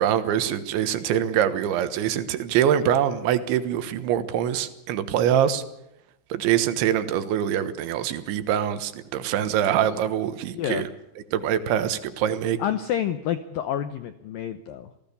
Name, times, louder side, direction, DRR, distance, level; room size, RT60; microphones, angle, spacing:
voice 1, 0.0-5.6 6.3-10.9 11.3-12.6, right 10 dB, 80° right, 11 dB, 3.6 m, -24 dB
voice 2, 10.5-10.9 12.6-15.1, left 10 dB, 80° left, 11 dB, 2.0 m, -29 dB
27.5 x 18.0 x 7.0 m, 0.88 s
omnidirectional pair, 5.4 m